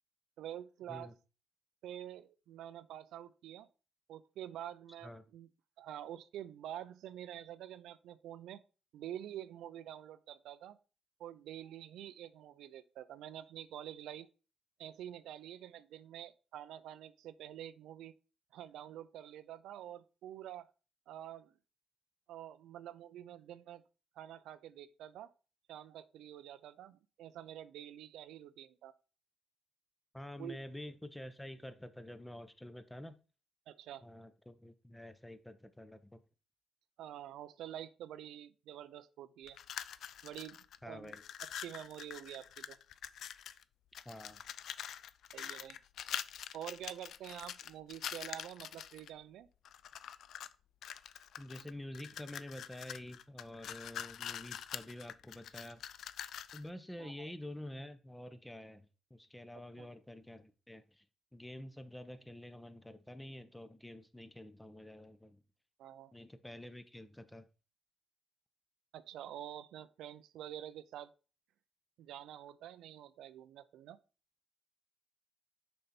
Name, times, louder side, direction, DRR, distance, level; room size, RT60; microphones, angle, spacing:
voice 1, 0.4-1.1 1.8-3.7 4.1-5.5 5.8-8.6 8.9-10.8 11.2-14.3 14.8-18.1 18.5-20.6 21.1-21.5 22.3-23.8 24.2-25.3 25.7-28.9 30.4-30.6 33.7-34.0 37.0-39.6 40.2-41.1 41.6-42.8 45.3-45.8 46.5-49.5 57.0-57.3 59.8-59.9 65.8-66.1 68.9-71.1 72.0-74.0, right 11 dB, 85° right, 0.5 m, -47 dB
voice 2, 30.1-33.1 34.0-36.2 40.8-41.2 44.0-44.4 51.4-55.8 56.5-61.0 61.3-65.4 66.1-67.5, left 1 dB, 5° left, 0.8 m, -48 dB
sound 1, 39.5-40.8 41.0-43.6 43.9-49.1 49.7-50.5 50.8-56.7, left 9 dB, 70° left, 0.4 m, -45 dB
6.7 x 5.3 x 4.3 m
cardioid pair, 90°, 0 cm